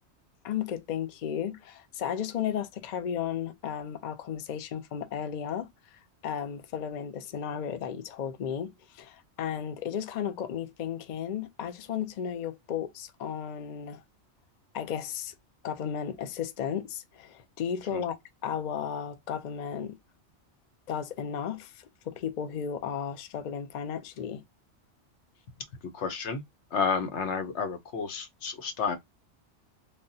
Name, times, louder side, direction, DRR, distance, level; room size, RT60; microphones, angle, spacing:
voice 1, 0.4-5.7 6.2-14.0 14.7-15.3 15.6-18.2 18.4-20.0 20.9-24.4, left 8 dB, 55° left, 0.5 m, -34 dB
voice 2, 25.9-26.4 26.7-29.0, left 6 dB, 80° left, 1.1 m, -30 dB
3.5 x 2.1 x 2.6 m
omnidirectional pair, 1.2 m